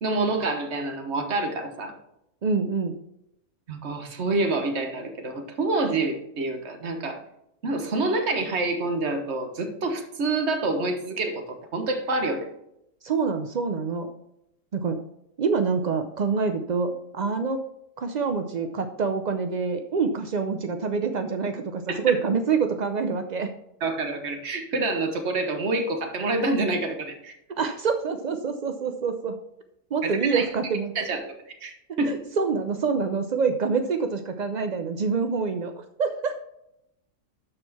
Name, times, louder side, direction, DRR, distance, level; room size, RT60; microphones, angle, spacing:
voice 1, 0.0-1.9 3.7-7.2 7.6-12.5 21.9-22.0 23.8-27.4 30.0-30.4 30.9-31.2 31.6-32.2, right 2 dB, 50° right, 5 dB, 1.5 m, -27 dB
voice 2, 2.4-3.0 13.0-14.1 14.7-15.0 15.4-17.6 18.0-23.5 27.5-29.4 29.9-30.9 32.1-35.7 36.0-36.3, right 5 dB, 70° right, 7 dB, 0.4 m, -26 dB
12.5 x 4.5 x 4.2 m, 0.79 s
omnidirectional pair, 1.6 m